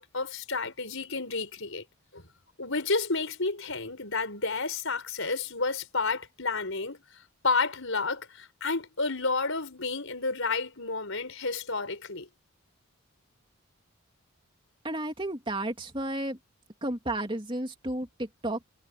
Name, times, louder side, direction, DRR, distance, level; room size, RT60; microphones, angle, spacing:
voice 1, 0.0-1.8 2.1-2.2 2.6-7.0 7.4-12.3, left 3 dB, 65° left, 5.6 m, -31 dB
voice 2, 14.8-16.4 16.8-18.7, right 1 dB, 25° right, 3.1 m, -32 dB
head